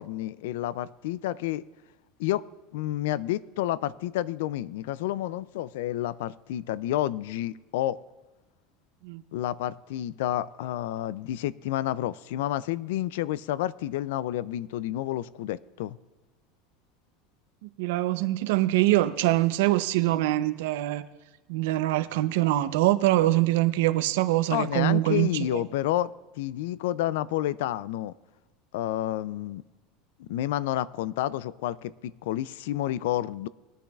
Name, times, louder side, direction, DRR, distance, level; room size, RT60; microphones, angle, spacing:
voice 1, 0.0-1.6 2.2-2.4 2.7-8.0 9.3-16.0 24.5-26.1 26.4-28.1 28.7-29.6 30.2-33.5, left 13 dB, 85° left, 20 dB, 0.3 m, -30 dB
voice 2, 17.6-21.0 21.5-25.6, right 16 dB, 80° right, 11 dB, 0.6 m, -24 dB
21.0 x 10.0 x 2.4 m, 1.1 s
supercardioid pair, 135°, 0 cm